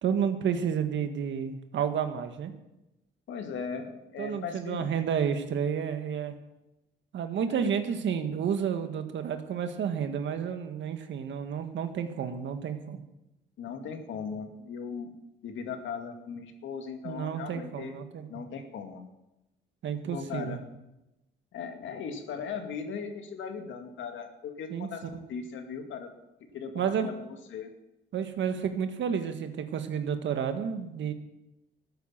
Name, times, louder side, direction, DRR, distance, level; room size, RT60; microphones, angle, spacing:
voice 1, 0.0-2.5 4.2-6.3 7.1-13.0 17.0-18.5 19.8-20.6 24.7-24.9 26.7-27.1 28.1-31.1, right 7 dB, 70° right, 8 dB, 1.7 m, -31 dB
voice 2, 3.3-4.9 7.5-7.7 13.6-15.1 15.4-17.9 18.3-19.0 20.1-20.7 21.5-26.1 26.5-27.7, left 6 dB, 75° left, 5 dB, 2.2 m, -38 dB
13.5 x 10.0 x 7.5 m, 0.94 s
cardioid pair, 90°, 20 cm